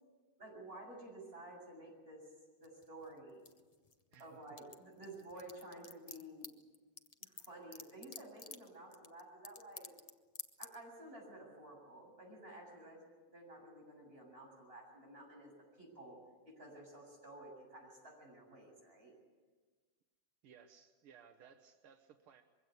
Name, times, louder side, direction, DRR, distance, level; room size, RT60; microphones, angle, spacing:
voice 1, 0.4-2.3 2.6-3.4 4.2-6.5 7.2-9.9 10.6-13.0 13.3-15.5 15.8-16.2 16.5-19.1, right 1 dB, 25° right, -2 dB, 7.6 m, -52 dB
sound 1, 2.6-4.2 4.5-10.1 10.3-10.7, left 4 dB, 55° left, 0.4 m, -50 dB
voice 2, 4.1-4.4 20.4-22.4, right 7 dB, 80° right, 6 dB, 1.9 m, -61 dB
23.0 x 16.5 x 9.6 m, 1.4 s
omnidirectional pair, 2.3 m